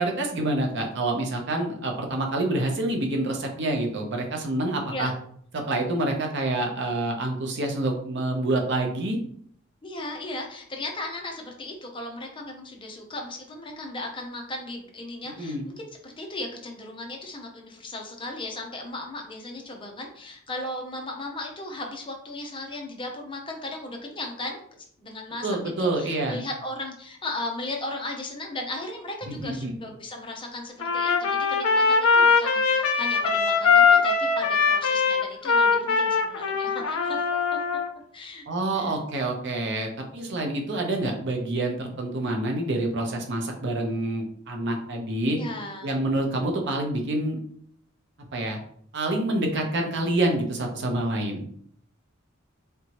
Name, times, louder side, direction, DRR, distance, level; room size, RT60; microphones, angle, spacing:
voice 1, 0.0-5.1 5.5-9.2 15.3-15.7 25.4-26.4 29.2-29.7 38.5-45.4 45.8-47.4 48.3-48.6 48.9-51.4, right 2 dB, 60° right, 2 dB, 0.7 m, -27 dB
voice 2, 9.8-15.7 16.0-24.6 25.0-37.3 37.5-37.6 38.1-38.4 38.7-38.9 45.3-45.9, left 2 dB, 25° left, 2 dB, 0.6 m, -36 dB
Trumpet, 30.8-37.9, left 5 dB, 90° left, 0.5 m, -21 dB
3.4 x 3.0 x 2.9 m, 0.63 s
head